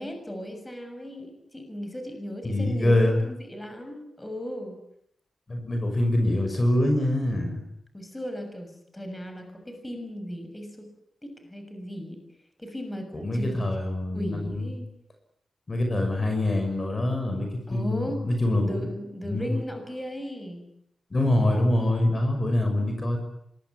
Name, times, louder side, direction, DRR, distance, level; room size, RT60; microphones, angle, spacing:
voice 1, 0.0-4.8 7.9-10.9 11.2-12.2 12.6-13.7 14.1-14.9 17.7-18.3 18.6-20.7, equal, 10° left, 6 dB, 6.6 m, -36 dB
voice 2, 2.4-3.2 5.5-7.6 13.1-14.7 15.7-18.9 19.2-19.5 21.1-23.2, left 1 dB, 30° left, 5 dB, 6.1 m, -25 dB
26.0 x 21.5 x 9.3 m, 0.74 s
wide cardioid pair, 120°, 0 cm